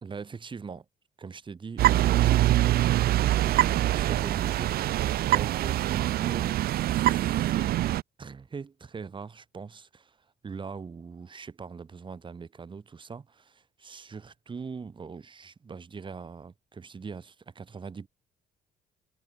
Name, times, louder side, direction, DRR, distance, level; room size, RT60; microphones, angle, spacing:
voice 1, 0.0-0.8 1.2-7.8 8.2-18.1, right 5 dB, 30° right, 3.4 m, -42 dB
sound 1, 1.8-8.0, right 14 dB, 65° right, 0.9 m, -24 dB
cardioid pair, 110°, 17 cm